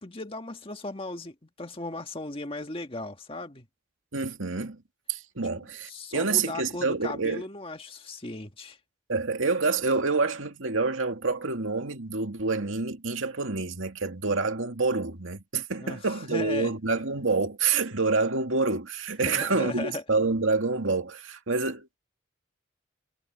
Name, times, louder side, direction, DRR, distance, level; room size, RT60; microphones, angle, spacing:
voice 1, 0.0-3.7 5.9-8.8 15.8-16.0 16.3-16.7 19.2-20.0, left 2 dB, 30° left, 1.8 m, -37 dB
voice 2, 4.1-4.8 5.1-7.4 9.1-22.0, right 4 dB, 80° right, 2.4 m, -27 dB
head